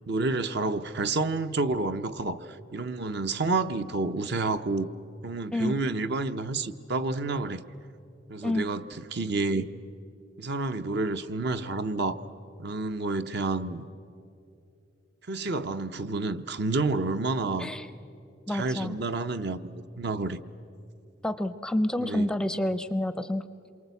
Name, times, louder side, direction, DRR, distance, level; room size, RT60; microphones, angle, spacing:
voice 1, 0.1-4.9 5.2-7.6 8.3-8.8 9.1-9.7 10.4-12.2 12.6-13.8 15.3-17.7 18.5-20.4 22.0-22.3, right 3 dB, 55° right, 0.8 m, -29 dB
voice 2, 17.6-17.9 18.5-19.0 21.2-23.5, left 1 dB, 5° left, 0.5 m, -28 dB
27.5 x 23.5 x 8.2 m
head